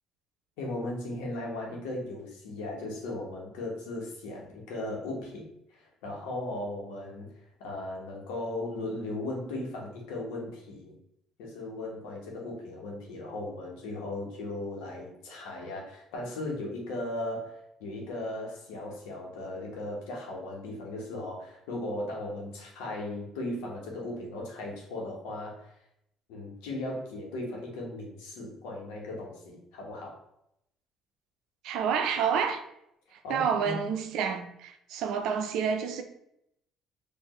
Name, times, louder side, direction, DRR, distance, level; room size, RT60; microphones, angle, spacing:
voice 1, 0.6-7.3 7.6-10.9 11.4-25.7 26.3-30.2 33.2-33.8, left 1 dB, 85° left, 1.2 m, -37 dB
voice 2, 31.6-32.6 33.3-36.0, right 7 dB, 75° right, 0.5 m, -29 dB
4.6 x 2.6 x 3.0 m
supercardioid pair, 80°, 0 cm